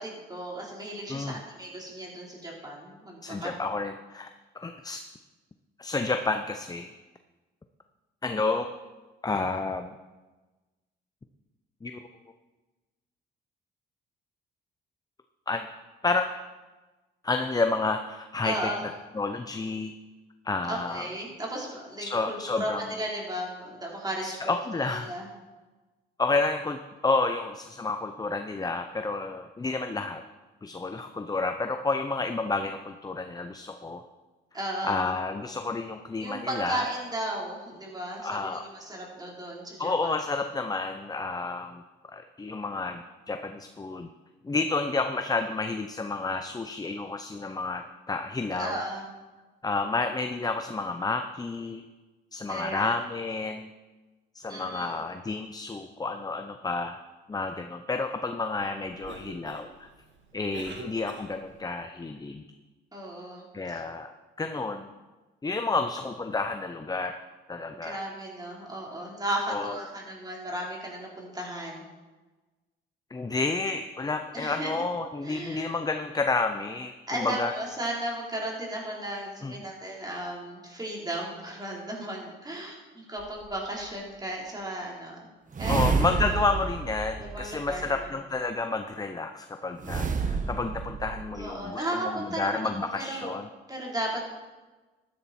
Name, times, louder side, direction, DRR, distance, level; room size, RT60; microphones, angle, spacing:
voice 1, 0.0-3.5 18.4-18.8 20.7-24.5 24.9-25.3 34.5-35.1 36.2-40.1 48.6-49.0 52.5-52.9 54.5-55.0 62.9-63.8 67.8-71.8 74.3-74.8 75.2-75.7 77.1-85.2 85.6-85.8 87.2-88.1 91.3-93.3 93.7-94.3, right 1 dB, 20° right, -2 dB, 3.9 m, -35 dB
voice 2, 1.1-1.4 3.2-4.3 4.5-5.0 5.8-6.9 8.2-8.7 9.2-9.9 11.8-12.0 15.5-15.7 16.0-16.3 17.2-18.7 19.1-19.9 20.4-21.1 22.0-22.8 24.2-25.1 26.2-30.2 30.6-34.0 34.8-36.9 38.2-38.6 39.8-41.8 42.1-44.1 44.4-48.8 49.6-51.8 52.3-53.7 54.3-57.0 57.3-59.7 60.3-62.4 63.5-64.1 64.4-64.9 65.4-67.2 67.5-68.0 69.5-69.7 73.1-77.5 79.4-79.5 85.7-93.5, left 3 dB, 20° left, 6 dB, 0.7 m, -30 dB
Cough, 58.8-61.7, right 5 dB, 70° right, 1.7 m, -45 dB
sound 1, 83.2-83.3 85.5-88.0 89.8-91.5, right 4 dB, 40° right, 1.2 m, -29 dB
13.0 x 10.5 x 4.4 m, 1.2 s
cardioid pair, 90°, 20 cm